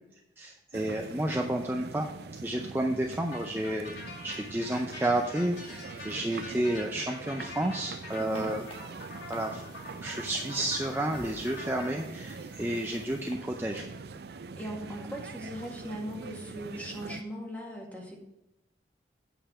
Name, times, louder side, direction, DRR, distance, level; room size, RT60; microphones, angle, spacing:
voice 1, 0.4-2.1 2.4-8.6 9.3-9.6 10.0-13.8, right 1 dB, 10° right, 2 dB, 0.5 m, -31 dB
sound 1, 0.7-17.2, right 4 dB, 65° right, 0.4 m, -43 dB
sound 2, 3.3-11.9, left 2 dB, 75° left, 3.4 m, -45 dB
sound 3, 8.1-13.3, left 1 dB, 30° left, 1.3 m, -51 dB
voice 2, 8.2-8.5 14.6-18.2, equal, 10° left, -1 dB, 1.7 m, -39 dB
8.8 x 5.6 x 5.6 m, 0.90 s
head